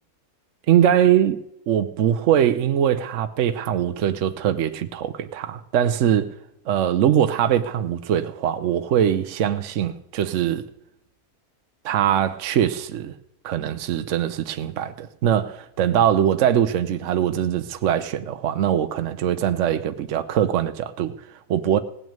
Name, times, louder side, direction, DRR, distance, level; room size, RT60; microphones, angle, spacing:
voice 1, 0.7-1.4 1.7-6.3 6.7-10.6 11.8-13.1 13.4-21.8, right 10 dB, 65° right, 0.9 m, -22 dB
17.5 x 6.2 x 8.6 m
omnidirectional pair, 1.6 m